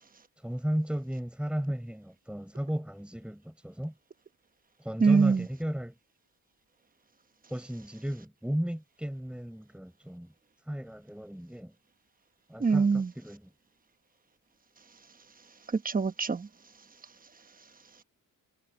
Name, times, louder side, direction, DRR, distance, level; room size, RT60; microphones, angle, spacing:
voice 1, 0.4-3.9 4.8-5.9 7.5-10.3 10.7-11.7 12.5-13.5, equal, 5° right, 4.7 m, -35 dB
voice 2, 5.0-5.5 12.6-13.1 15.7-16.5, right 5 dB, 25° right, 1.0 m, -24 dB
wide cardioid pair, 135°, 35 cm